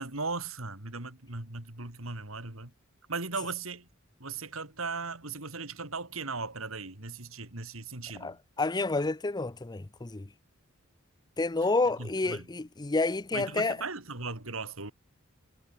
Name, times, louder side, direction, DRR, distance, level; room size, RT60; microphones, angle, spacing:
voice 1, 0.0-2.7 3.1-3.9 4.2-8.4 12.0-12.5 13.3-14.9, right 4 dB, 75° right, 3.6 m, -37 dB
voice 2, 8.2-10.3 11.4-13.8, left 3 dB, 20° left, 0.6 m, -29 dB
head